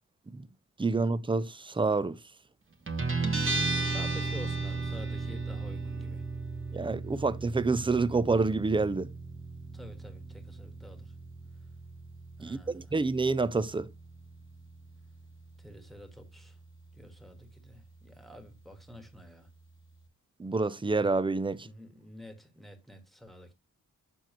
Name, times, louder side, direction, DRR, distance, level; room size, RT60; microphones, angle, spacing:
voice 1, 0.8-2.2 6.7-9.1 12.4-13.9 20.4-21.7, right 3 dB, 15° right, 0.4 m, -28 dB
Guitar, 2.9-20.1, right 3 dB, 40° right, 1.3 m, -37 dB
voice 2, 3.8-6.2 9.7-11.1 12.4-12.9 15.6-16.5 16.9-19.5 21.6-23.5, equal, ahead, 1.5 m, -48 dB
7.1 x 5.9 x 2.9 m
wide cardioid pair, 130°, 33 cm